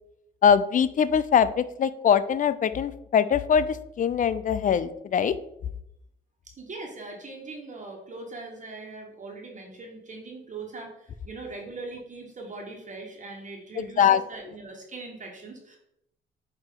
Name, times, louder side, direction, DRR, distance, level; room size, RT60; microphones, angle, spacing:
voice 1, 0.4-5.3 13.8-14.2, left 7 dB, 40° left, 14 dB, 0.4 m, -22 dB
voice 2, 6.5-15.8, right 3 dB, 40° right, 0 dB, 1.5 m, -40 dB
8.4 x 3.0 x 3.8 m, 0.80 s
cardioid pair, 90°, 20 cm